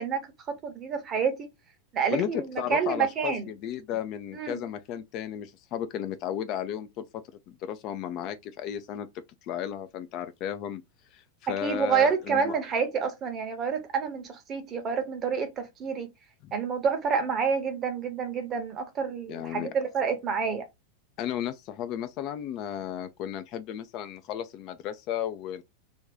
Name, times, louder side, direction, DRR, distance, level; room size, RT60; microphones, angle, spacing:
voice 1, 0.0-1.5 1.9-3.4 4.3-4.6 11.6-16.1 16.5-20.6, right 6 dB, 30° right, 0.8 m, -28 dB
voice 2, 2.1-7.0 7.7-9.1 9.4-10.8 11.1-12.5 16.4-16.5 19.3-19.7 21.2-25.6, left 10 dB, 40° left, 0.4 m, -34 dB
2.5 x 2.3 x 3.6 m
figure-of-eight pair, 90°, 0 cm